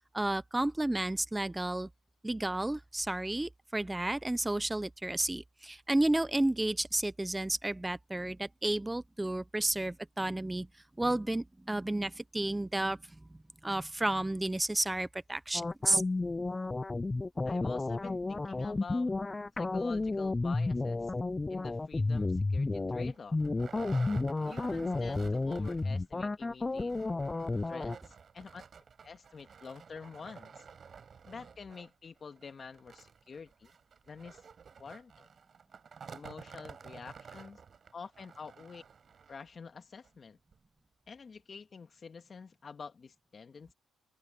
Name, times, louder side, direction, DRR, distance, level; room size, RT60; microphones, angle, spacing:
voice 1, 0.1-1.9 2.2-10.7 11.0-13.0 13.3-16.0, right 1 dB, 10° right, 0.8 m, -32 dB
sound 1, 15.5-28.0, left 3 dB, 20° left, 0.4 m, -32 dB
voice 2, 17.5-19.2 19.6-21.1 21.5-23.4 24.4-26.9 27.7-28.6 29.0-30.6 31.3-33.7 34.1-34.4 34.8-35.3 36.1-37.6 37.9-38.8 39.3-40.4 41.1-43.7, left 5 dB, 40° left, 2.2 m, -47 dB
sound 2, 22.1-22.3 22.8-22.9 23.1-26.0 26.3-26.4 26.7-39.5 40.0-40.1 40.5-40.6, right 6 dB, 45° right, 7.0 m, -51 dB
open air
cardioid pair, 90°, 0 cm